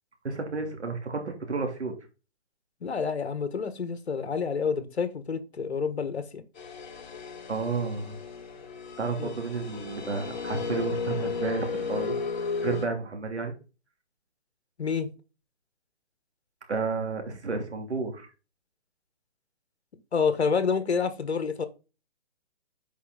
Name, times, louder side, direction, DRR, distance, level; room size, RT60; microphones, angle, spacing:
voice 1, 0.2-1.9 7.5-8.2 9.0-12.2 12.6-13.5 16.7-18.3, right 4 dB, 80° right, 3.2 m, -31 dB
voice 2, 2.8-6.4 9.2-9.3 14.8-15.1 20.1-21.7, left 5 dB, 70° left, 1.6 m, -28 dB
sound 1, 6.6-12.9, left 5 dB, 45° left, 1.6 m, -34 dB
8.3 x 5.3 x 3.9 m
hypercardioid pair, 145°, 33 cm